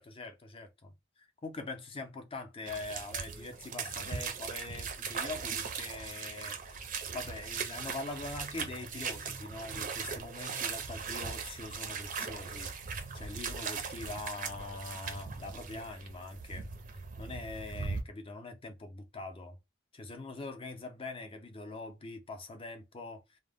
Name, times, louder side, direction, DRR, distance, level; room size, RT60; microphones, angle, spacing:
voice 1, 0.0-6.8 7.1-12.7 13.1-16.7 17.2-19.6 19.9-23.4, left 3 dB, 30° left, 0.5 m, -43 dB
sound 1, 2.7-18.0, right 5 dB, 40° right, 0.5 m, -39 dB
2.1 x 2.0 x 3.4 m
head